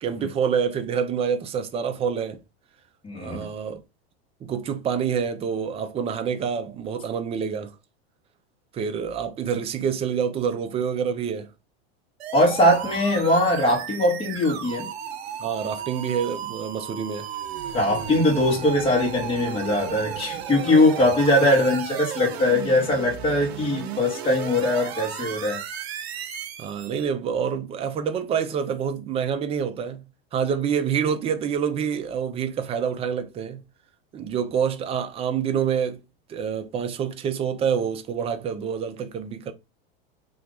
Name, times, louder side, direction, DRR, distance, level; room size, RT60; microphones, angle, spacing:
voice 1, 0.0-2.4 3.1-3.8 4.4-7.7 8.7-11.5 15.4-17.3 20.7-20.8 21.4-21.5 26.6-30.1 30.3-33.6 34.1-36.0 36.3-39.5, right 7 dB, 20° right, 0.4 m, -27 dB
voice 2, 3.0-3.5 12.3-14.9 17.7-25.6, left 1 dB, 20° left, 1.3 m, -21 dB
sound 1, 12.2-27.1, right 8 dB, 90° right, 0.7 m, -35 dB
2.8 x 2.5 x 3.7 m
supercardioid pair, 120°, 31 cm